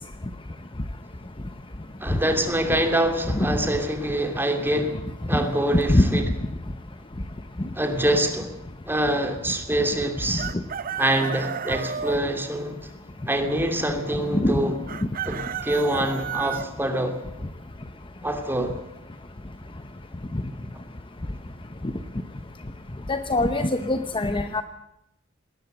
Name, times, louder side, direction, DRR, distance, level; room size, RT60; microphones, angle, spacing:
voice 1, 2.0-6.2 7.7-8.5 8.9-10.5 11.0-12.7 13.3-14.7 15.3-17.2 18.2-18.8, right 1 dB, 10° right, 5 dB, 2.7 m, -25 dB
voice 2, 5.9-6.2 14.3-14.7 23.1-24.6, left 1 dB, 25° left, 9 dB, 0.9 m, -22 dB
Chicken rooster, 10.4-12.2 14.9-16.7, right 7 dB, 45° right, 0.7 m, -32 dB
19.5 x 18.5 x 7.9 m, 0.84 s
head